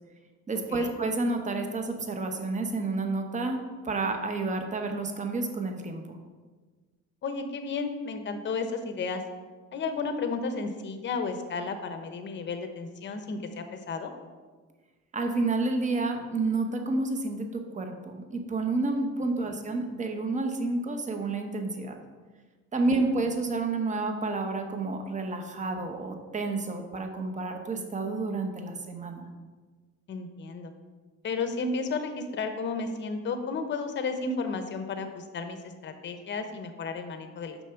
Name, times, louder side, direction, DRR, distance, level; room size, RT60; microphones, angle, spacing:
voice 1, 0.5-6.2 15.1-22.0 22.7-29.3, right 3 dB, 25° right, 5 dB, 1.0 m, -30 dB
voice 2, 7.2-9.2 9.7-14.1 19.5-19.6 23.0-23.2 30.1-30.7 31.2-37.6, left 4 dB, 40° left, 7 dB, 0.9 m, -33 dB
7.0 x 5.9 x 5.8 m, 1.4 s
cardioid pair, 135°, 29 cm